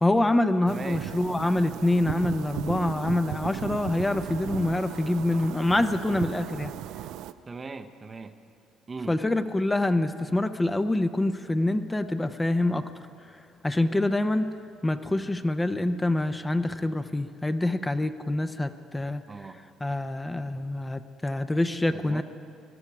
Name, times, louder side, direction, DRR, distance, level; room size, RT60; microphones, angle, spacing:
voice 1, 0.0-6.7 9.1-12.9 13.6-14.5 14.8-19.2 19.8-22.2, left 2 dB, 15° left, 9 dB, 0.7 m, -26 dB
voice 2, 0.7-1.1 7.5-8.4 8.9-9.2 19.3-19.6 21.9-22.2, right 4 dB, 30° right, 8 dB, 0.7 m, -39 dB
sound 1, 0.7-7.3, right 12 dB, 70° right, 0.4 m, -36 dB
20.0 x 12.5 x 4.9 m, 2.3 s
hypercardioid pair, 60°, 0 cm